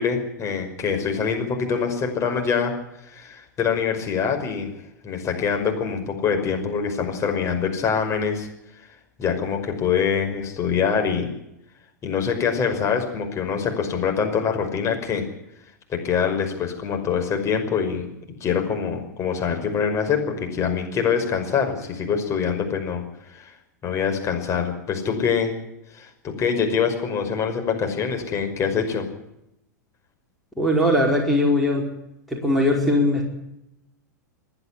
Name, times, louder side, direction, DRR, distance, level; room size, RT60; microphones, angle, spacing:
voice 1, 0.0-2.7 3.0-4.7 5.0-8.5 9.2-11.3 12.0-15.3 15.9-18.1 18.4-23.6 23.8-25.5 25.9-29.1, left 6 dB, 30° left, 4 dB, 5.6 m, -24 dB
voice 2, 30.6-31.9 32.3-33.3, left 1 dB, ahead, -2 dB, 5.2 m, -20 dB
28.0 x 11.0 x 9.9 m, 0.84 s
hypercardioid pair, 95°, 10 cm